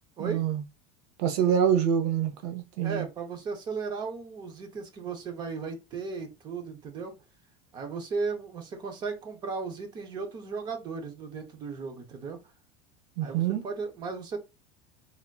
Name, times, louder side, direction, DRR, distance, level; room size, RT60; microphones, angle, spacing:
voice 1, 0.2-0.6 1.2-3.0 13.2-13.6, right 8 dB, 70° right, 0.7 m, -26 dB
voice 2, 2.8-7.1 7.7-12.4 13.2-14.4, right 4 dB, 20° right, 0.5 m, -36 dB
3.3 x 2.5 x 2.2 m
cardioid pair, 180°, 20 cm